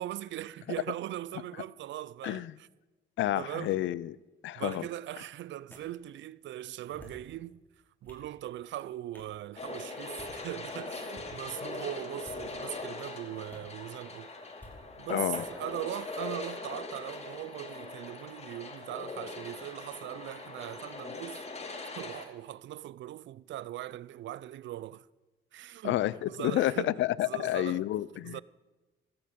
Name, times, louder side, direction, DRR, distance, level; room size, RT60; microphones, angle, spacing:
voice 1, 0.0-2.5 3.3-3.9 4.5-7.6 8.0-14.3 15.0-21.4 21.9-25.1 25.5-26.0 26.3-27.8 28.2-28.4, right 13 dB, 70° right, 0.5 m, -40 dB
voice 2, 2.2-2.5 3.2-4.2 4.4-4.9 15.1-15.4 25.8-28.4, left 14 dB, 70° left, 0.5 m, -30 dB
sound 1, 4.7-4.8 5.7-5.8 6.8-7.3 7.8-8.3 9.1-9.4 10.0-10.3 11.1-11.3 12.1-12.7 13.5-13.6 14.6-14.7 15.4-15.5, left 1 dB, 10° left, 5.5 m, -52 dB
sound 2, 9.6-22.2, left 3 dB, 35° left, 2.4 m, -41 dB
16.0 x 14.0 x 5.2 m
cardioid pair, 90°, 20 cm